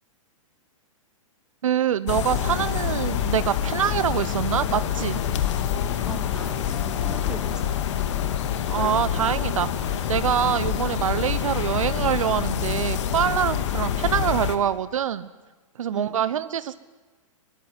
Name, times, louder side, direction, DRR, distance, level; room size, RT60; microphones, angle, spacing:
voice 1, 1.6-5.2 8.7-15.3 15.8-16.8, right 9 dB, 70° right, 15 dB, 1.0 m, -25 dB
sound 1, 2.1-14.6, left 9 dB, 60° left, 2.3 m, -26 dB
voice 2, 6.0-7.8 15.9-16.1, right 1 dB, 5° right, 6 dB, 2.4 m, -41 dB
21.5 x 19.0 x 9.6 m, 1.3 s
hypercardioid pair, 120°, 17 cm